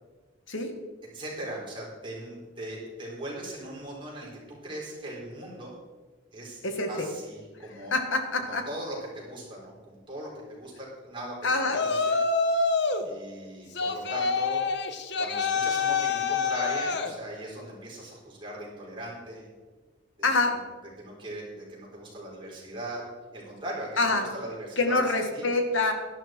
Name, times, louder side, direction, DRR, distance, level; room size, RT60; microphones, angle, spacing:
voice 1, 1.1-5.8 6.3-6.6 6.9-7.9 8.4-12.2 13.0-14.6 15.2-19.5 20.2-20.3 21.0-23.0 23.3-25.0 25.3-25.4, right 1 dB, 25° right, -4 dB, 4.4 m, -39 dB
voice 2, 6.6-7.1 7.9-8.7 11.4-11.8 20.2-20.6 24.0-24.3 24.8-25.9, left 3 dB, 85° left, 5 dB, 1.7 m, -25 dB
Yell, 11.7-13.1 13.7-17.1, left 4 dB, 60° left, 1.0 m, -26 dB
12.5 x 12.0 x 4.5 m, 1.3 s
head